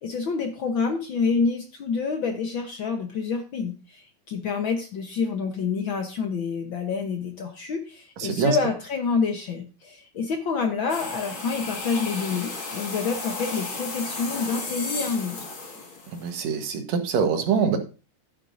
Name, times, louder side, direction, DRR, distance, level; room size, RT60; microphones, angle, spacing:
voice 1, 0.0-15.4, left 5 dB, 65° left, 4 dB, 1.2 m, -27 dB
voice 2, 8.2-8.6 16.1-17.8, right 6 dB, 65° right, 5 dB, 2.5 m, -24 dB
sound 1, 10.9-16.7, left 3 dB, 45° left, 2.7 m, -34 dB
12.0 x 9.6 x 2.6 m, 0.33 s
omnidirectional pair, 3.5 m